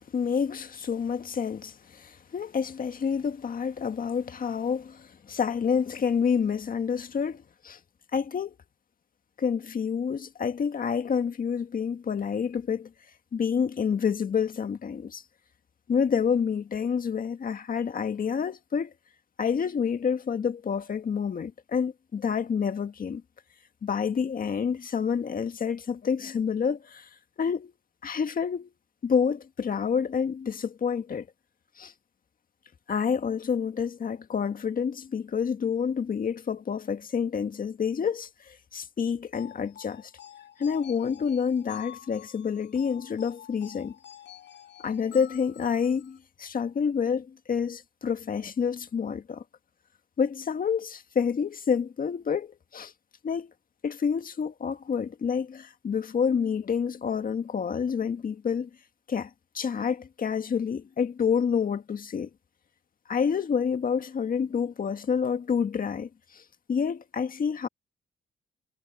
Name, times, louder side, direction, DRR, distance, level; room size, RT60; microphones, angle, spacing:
voice 1, 0.1-7.8 8.1-8.5 9.4-12.9 13.3-15.2 15.9-18.9 19.4-23.2 23.8-27.1 27.4-27.7 28.0-28.7 29.0-31.3 31.8-31.9 32.9-40.1 40.6-43.9 44.8-49.4 50.2-52.9 53.2-53.5 53.8-58.7 59.1-62.3 63.1-66.4 66.7-67.7, left 6 dB, 45° left, 1.8 m, -28 dB
sound 1, 39.3-46.2, left 10 dB, 65° left, 4.7 m, -48 dB
cardioid pair, 90°, 20 cm